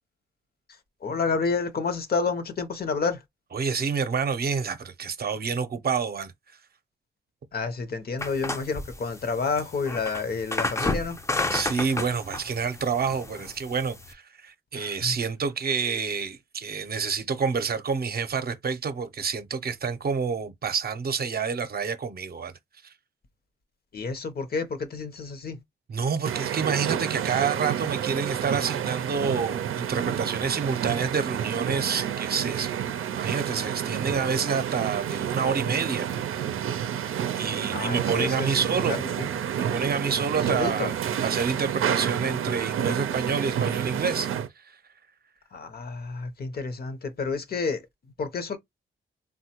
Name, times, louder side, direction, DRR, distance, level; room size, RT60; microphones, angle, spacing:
voice 1, 1.0-3.2 7.5-11.2 14.7-15.1 23.9-25.6 37.7-39.3 40.5-40.9 45.5-47.9 48.2-48.6, left 4 dB, 50° left, 0.7 m, -30 dB
voice 2, 3.5-6.3 10.8-10.9 11.5-22.5 22.8-22.9 25.9-32.7 33.2-36.1 36.4-36.5 37.3-39.0 39.5-44.3, right 5 dB, 50° right, 0.6 m, -28 dB
sound 1, 8.2-14.1, left 2 dB, 15° left, 0.4 m, -32 dB
sound 2, 26.2-44.5, right 9 dB, 90° right, 0.5 m, -29 dB
3.5 x 2.2 x 2.8 m
cardioid pair, 95°, 21 cm